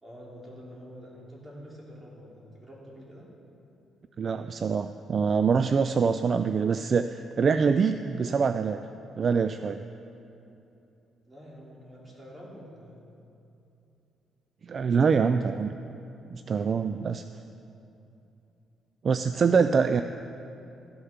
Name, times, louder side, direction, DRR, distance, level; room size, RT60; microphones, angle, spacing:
voice 1, 0.0-3.3 11.3-13.1 14.8-15.5 19.3-19.8, equal, 20° right, -4 dB, 3.0 m, -47 dB
voice 2, 4.2-8.8 9.2-9.8 14.6-15.7 16.3-17.2 19.0-20.0, right 5 dB, 45° right, 10 dB, 0.3 m, -24 dB
14.0 x 6.5 x 5.9 m, 2.8 s
cardioid pair, 90°, 0 cm